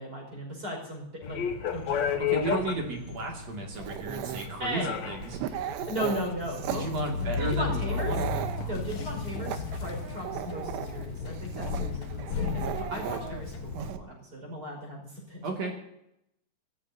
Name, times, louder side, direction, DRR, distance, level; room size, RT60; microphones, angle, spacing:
voice 1, 0.0-1.4 1.7-2.6 4.6-5.0 5.9-6.9 7.1-8.1 8.6-15.7, equal, 20° right, 0 dB, 5.5 m, -37 dB
sound 1, 1.2-13.9, left 6 dB, 75° left, 1.6 m, -34 dB
voice 2, 2.2-5.7 6.7-8.3 15.4-15.7, right 3 dB, 45° right, 1 dB, 3.0 m, -34 dB
Dog, 3.7-14.0, right 10 dB, 90° right, 3.3 m, -38 dB
24.0 x 16.5 x 2.8 m, 0.80 s
omnidirectional pair, 5.0 m